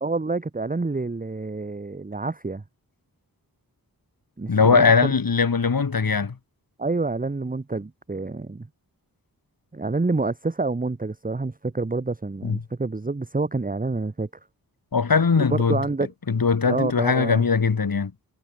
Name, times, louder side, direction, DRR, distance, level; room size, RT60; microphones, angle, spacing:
voice 1, 0.0-2.6 4.4-5.1 6.8-8.7 9.7-14.3 15.4-16.1 16.7-17.4, right 3 dB, 20° right, 1.1 m, -28 dB
voice 2, 4.5-6.4 12.4-12.6 14.9-15.8 16.3-18.1, left 5 dB, 65° left, 3.4 m, -20 dB
wide cardioid pair, 90°, 37 cm